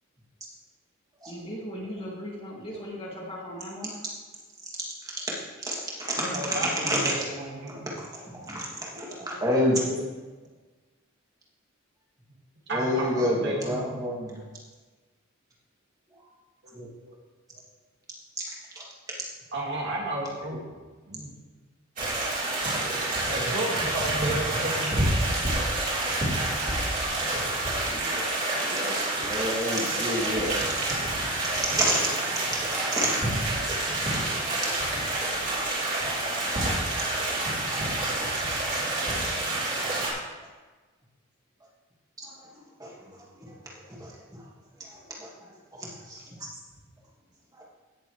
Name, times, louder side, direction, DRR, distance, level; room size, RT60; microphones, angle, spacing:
voice 1, 1.3-4.0, equal, 30° left, -4 dB, 2.2 m, -38 dB
voice 2, 5.7-7.1 7.7-10.0 12.7-14.4 16.7-16.9 18.8-18.9 22.7-23.5 27.9-28.2 28.5-30.9 31.4-32.3 32.5-33.2 42.2-42.3 42.8-43.5 44.0-44.2 44.9-45.3 45.7-46.2 47.6-47.7, equal, 20° right, -4 dB, 2.4 m, -30 dB
voice 3, 6.2-7.9 12.7-14.0 16.6-17.2 19.5-20.6 21.1-21.3 23.3-25.0, right 1 dB, 55° right, -3 dB, 2.2 m, -33 dB
sound 1, 22.0-40.1, right 2 dB, 40° right, 3.5 m, -28 dB
16.5 x 6.9 x 3.2 m, 1.3 s
head